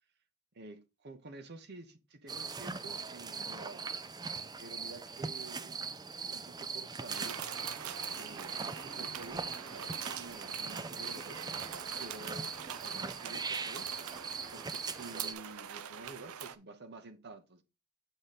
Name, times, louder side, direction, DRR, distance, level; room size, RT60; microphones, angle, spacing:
voice 1, 0.5-3.9 4.6-5.7 6.2-7.7 8.1-11.6 11.9-13.9 14.5-17.6, right 2 dB, 50° right, 0.9 m, -50 dB
sound 1, 2.3-15.3, right 5 dB, 20° right, 0.4 m, -40 dB
sound 2, 7.1-16.6, right 9 dB, 80° right, 0.6 m, -44 dB
7.9 x 3.8 x 4.1 m
head